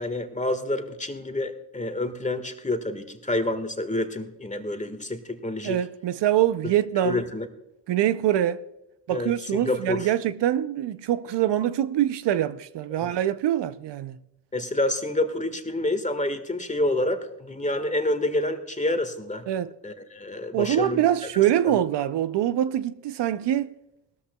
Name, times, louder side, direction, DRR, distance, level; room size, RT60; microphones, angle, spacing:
voice 1, 0.0-5.8 7.0-7.5 9.1-10.1 12.9-13.1 14.5-19.4 19.8-21.0 21.6-21.7, left 1 dB, 15° left, 1.6 m, -28 dB
voice 2, 5.6-7.2 7.9-8.6 9.1-14.2 19.5-19.7 20.5-23.7, right 11 dB, 70° right, 0.6 m, -24 dB
18.0 x 13.0 x 2.3 m
supercardioid pair, 50°, 44 cm